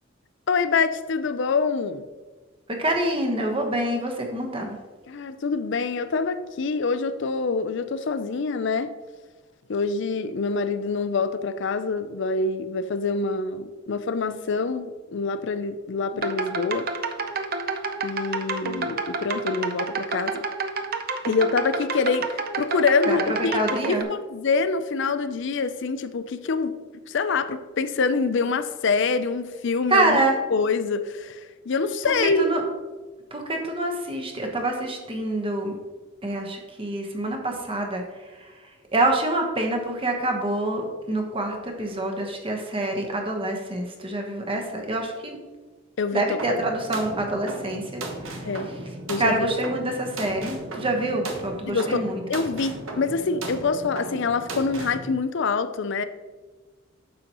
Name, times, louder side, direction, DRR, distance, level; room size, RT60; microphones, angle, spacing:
voice 1, 0.5-2.1 5.1-8.9 9.7-16.9 18.0-20.4 21.3-26.8 27.1-30.2 30.5-32.5 46.0-46.6 48.4-48.7 49.1-49.5 51.7-56.0, left 4 dB, 65° left, 12 dB, 0.5 m, -25 dB
voice 2, 2.7-4.8 23.1-24.1 29.9-30.4 32.4-32.6 33.3-35.8 36.2-38.0 38.9-45.4 46.1-48.0 49.2-52.2, right 2 dB, 25° right, 2 dB, 1.1 m, -26 dB
sound 1, 16.1-24.0, right 4 dB, 50° right, 0.6 m, -29 dB
sound 2, 46.4-55.0, right 2 dB, 85° right, 1.1 m, -36 dB
9.6 x 6.8 x 3.0 m, 1.3 s
head